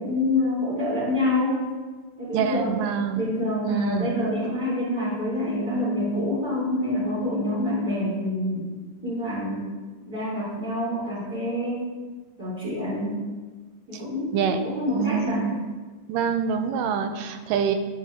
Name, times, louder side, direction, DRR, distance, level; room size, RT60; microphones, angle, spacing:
voice 1, 0.0-1.6 2.2-2.8 3.1-8.7 9.0-9.7 10.1-11.9 12.4-13.2 13.9-15.5, left 1 dB, 25° right, -11 dB, 4.4 m, -26 dB
voice 2, 2.3-3.2 3.6-4.5 14.3-15.5 16.1-17.8, right 7 dB, 80° right, 7 dB, 2.4 m, -26 dB
14.0 x 11.0 x 3.6 m, 1.4 s
omnidirectional pair, 4.0 m